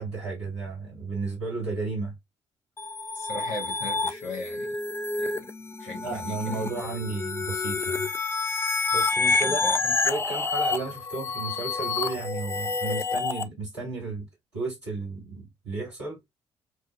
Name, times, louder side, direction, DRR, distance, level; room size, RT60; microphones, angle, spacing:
voice 1, 0.0-2.1 6.0-8.1 8.9-14.2 14.5-16.2, right 3 dB, 85° right, 1.8 m, -33 dB
sound 1, 2.8-13.4, left 3 dB, 15° left, 0.5 m, -28 dB
voice 2, 3.1-4.8 5.2-5.5 5.8-6.7 9.2-9.8, left 2 dB, 75° left, 1.4 m, -38 dB
4.5 x 2.2 x 2.4 m
figure-of-eight pair, 40°, 14 cm